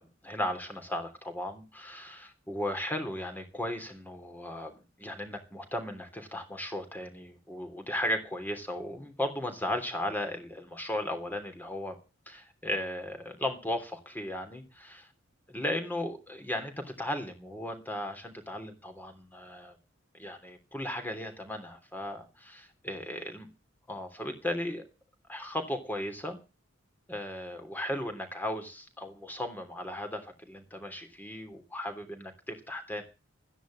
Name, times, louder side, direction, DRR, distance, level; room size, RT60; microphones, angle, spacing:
voice 1, 0.0-11.9 12.3-15.1 15.5-19.8 20.1-23.5 23.9-24.8 25.3-26.4 27.1-33.0, left 1 dB, 10° left, 5 dB, 3.1 m, -36 dB
13.5 x 10.0 x 7.6 m, 0.32 s
head